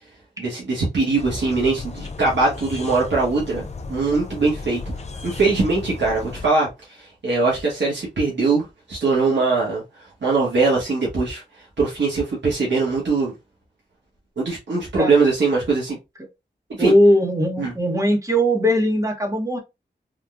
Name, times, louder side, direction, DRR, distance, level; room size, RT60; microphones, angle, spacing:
voice 1, 0.4-4.8 5.2-9.8 10.2-11.4 11.8-13.3 14.4-16.0 16.8-16.9 17.6-17.7, right 3 dB, 75° right, 1.2 m, -21 dB
sound 1, 1.2-6.5, left 4 dB, 35° left, 0.4 m, -35 dB
voice 2, 16.8-19.6, equal, 15° right, 0.9 m, -19 dB
3.7 x 2.3 x 2.4 m
wide cardioid pair, 105°, 19 cm